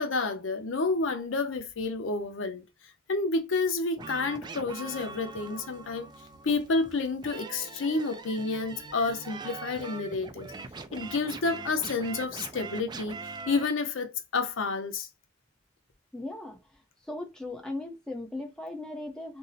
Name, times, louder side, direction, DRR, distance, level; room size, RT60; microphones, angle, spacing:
voice 1, 0.0-2.6 3.1-6.1 6.4-10.5 10.9-13.2 13.5-15.1, left 3 dB, 75° left, 0.6 m, -29 dB
sound 1, 4.0-13.7, right 3 dB, 20° right, 0.3 m, -42 dB
voice 2, 16.1-16.6 17.1-19.4, left 2 dB, 5° left, 0.7 m, -37 dB
2.7 x 2.1 x 3.8 m
head